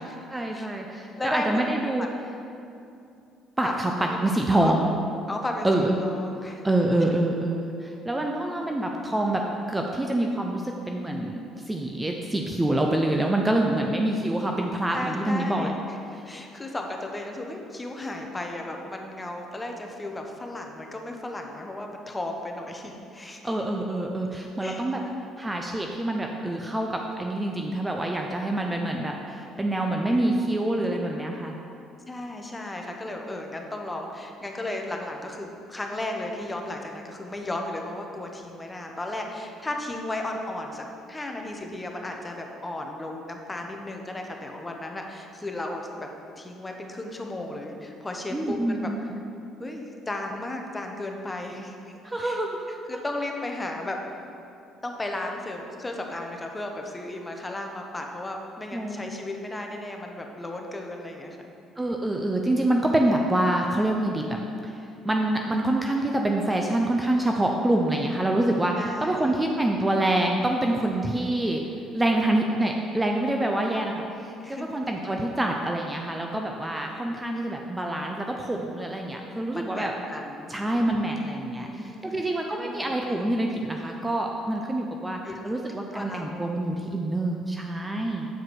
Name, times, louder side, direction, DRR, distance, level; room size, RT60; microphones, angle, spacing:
voice 1, 0.3-2.1 3.6-4.9 5.6-6.0 6.4-9.4 9.7-11.4 11.7-15.7 23.4-25.0 25.4-31.5 48.3-49.0 52.0-52.6 58.7-59.0 61.8-64.3 65.0-71.6 71.9-79.9 80.5-88.3, right 1 dB, 15° right, 1 dB, 0.6 m, -26 dB
voice 2, 1.2-1.6 2.0-2.1 3.6-3.7 4.0-4.3 4.6-4.9 5.3-6.6 13.8-14.2 14.9-23.5 24.6-25.1 29.8-30.4 32.1-46.1 46.4-48.9 49.6-51.9 52.2-52.4 52.9-54.0 54.8-61.5 68.8-69.3 74.4-74.8 79.5-80.9 81.6-82.2 82.5-82.9 85.2-85.4 85.9-86.5, left 1 dB, 15° left, 2 dB, 0.9 m, -35 dB
8.0 x 4.7 x 4.7 m, 2.6 s
supercardioid pair, 85°, 0 cm